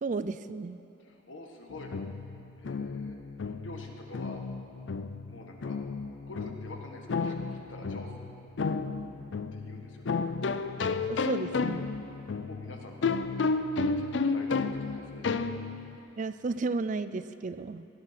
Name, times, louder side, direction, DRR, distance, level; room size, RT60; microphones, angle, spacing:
voice 1, 0.0-0.8 11.1-11.9 16.2-17.9, right 3 dB, 40° right, 13 dB, 0.4 m, -33 dB
voice 2, 1.0-1.9 2.6-3.1 3.4-4.4 5.3-5.8 6.3-8.2 9.5-10.2 12.1-13.0 13.9-15.3, left 2 dB, 85° left, 2 dB, 1.6 m, -47 dB
Short Pizzicato Song, 1.7-16.0, left 4 dB, 65° left, 0.5 m, -32 dB
17.0 x 9.9 x 5.8 m, 2.7 s
head